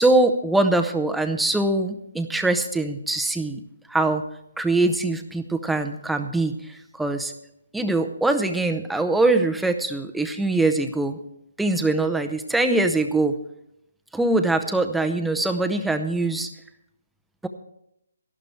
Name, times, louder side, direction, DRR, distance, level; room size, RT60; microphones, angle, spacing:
voice 1, 0.0-3.6 3.9-4.2 4.6-7.3 7.7-11.2 11.6-13.4 14.1-16.5, right 2 dB, ahead, 6 dB, 0.7 m, -22 dB
13.0 x 12.0 x 4.5 m, 0.80 s
hypercardioid pair, 155°, 0 cm